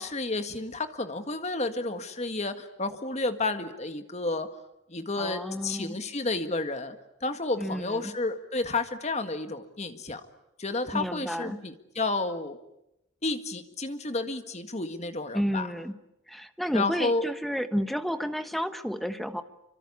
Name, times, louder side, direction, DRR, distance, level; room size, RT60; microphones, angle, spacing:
voice 1, 0.0-4.5 4.9-7.0 7.2-10.2 10.6-12.6 13.2-15.7 16.7-17.2, left 3 dB, 35° left, 8 dB, 1.8 m, -31 dB
voice 2, 5.2-6.0 7.6-8.1 10.9-11.6 15.3-16.0 16.3-19.4, equal, ahead, 9 dB, 1.2 m, -31 dB
26.5 x 25.0 x 8.5 m, 0.88 s
head